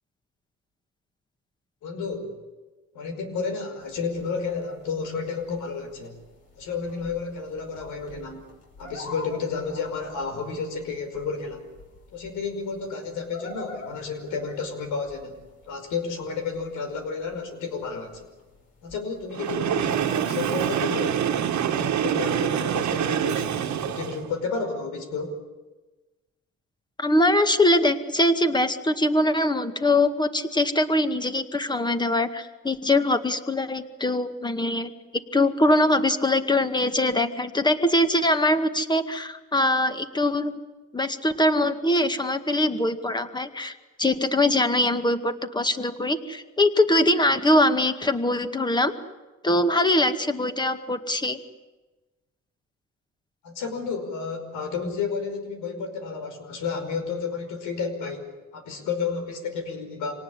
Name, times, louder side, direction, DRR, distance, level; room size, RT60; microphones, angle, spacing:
voice 1, 1.8-2.4 2.9-6.2 6.6-8.4 8.8-11.6 12.1-15.4 15.6-18.3 18.8-21.2 21.7-25.4 53.4-60.1, left 5 dB, 90° left, 6 dB, 5.3 m, -31 dB
sound 1, 3.8-21.5, left 2 dB, 55° left, 5.7 m, -48 dB
Train, 19.3-24.3, right 9 dB, 70° right, 1.7 m, -26 dB
voice 2, 27.0-40.6 40.9-48.9 49.4-51.4, left 1 dB, 15° left, 8 dB, 2.0 m, -22 dB
26.5 x 19.0 x 10.0 m, 1.2 s
cardioid pair, 90°, 30 cm